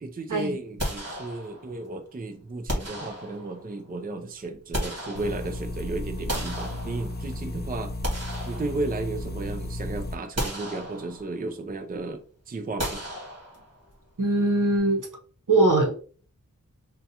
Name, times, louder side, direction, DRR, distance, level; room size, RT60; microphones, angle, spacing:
voice 1, 0.0-7.9 8.5-13.0, right 2 dB, 30° right, 6 dB, 0.4 m, -34 dB
sound 1, 0.8-1.8 2.7-3.7 4.4-5.7 6.3-7.4 7.8-9.3 9.7-9.8 10.4-11.4 12.8-13.9, equal, 50° right, 1.4 m, -34 dB
sound 2, 5.1-10.1, left 1 dB, 30° left, 0.5 m, -34 dB
voice 2, 14.2-15.1 15.5-15.9, right 2 dB, 75° right, 2 dB, 1.0 m, -21 dB
5.2 x 2.3 x 2.8 m, 0.42 s
wide cardioid pair, 70°, 32 cm